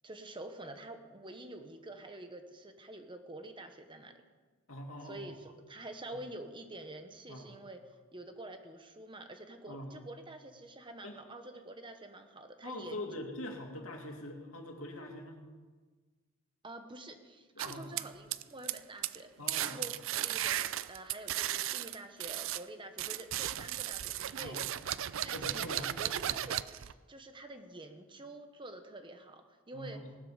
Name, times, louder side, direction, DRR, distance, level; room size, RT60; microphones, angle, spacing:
voice 1, 0.0-4.2 5.0-13.1 16.6-19.3 19.6-24.6 25.2-30.3, right 2 dB, 25° right, 6 dB, 1.2 m, -47 dB
voice 2, 4.7-5.3 6.1-6.2 7.3-7.5 9.7-10.0 11.0-11.2 12.6-15.4 17.6-17.9 19.4-19.9 24.4-24.7 25.3-25.9 26.2-26.4 29.7-30.1, left 1 dB, 75° left, 2 dB, 2.6 m, -43 dB
sound 1, 17.6-18.8 19.0-19.2 19.5-22.6 23.0-26.9, right 12 dB, 65° right, 0.5 m, -35 dB
18.5 x 13.0 x 5.1 m, 1.4 s
head